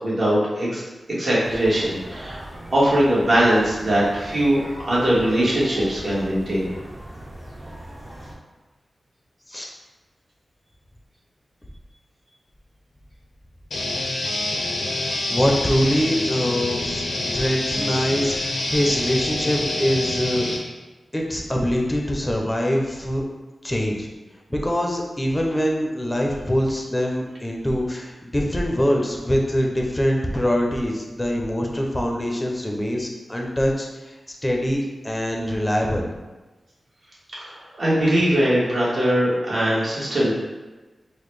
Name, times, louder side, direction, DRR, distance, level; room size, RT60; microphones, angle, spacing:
voice 1, 0.0-0.8 1.1-2.4 2.7-6.7 37.4-40.3, right 1 dB, 55° right, -7 dB, 1.3 m, -21 dB
sound 1, 1.4-8.4, right 1 dB, 30° right, 0.7 m, -39 dB
sound 2, 13.7-20.6, left 1 dB, 85° left, 0.6 m, -26 dB
voice 2, 15.3-17.0 17.3-20.5 21.1-23.2 23.6-24.1 24.5-33.9 34.3-36.1, equal, 15° left, 0 dB, 0.6 m, -23 dB
3.9 x 2.1 x 3.2 m, 1.2 s
wide cardioid pair, 70°, 0 cm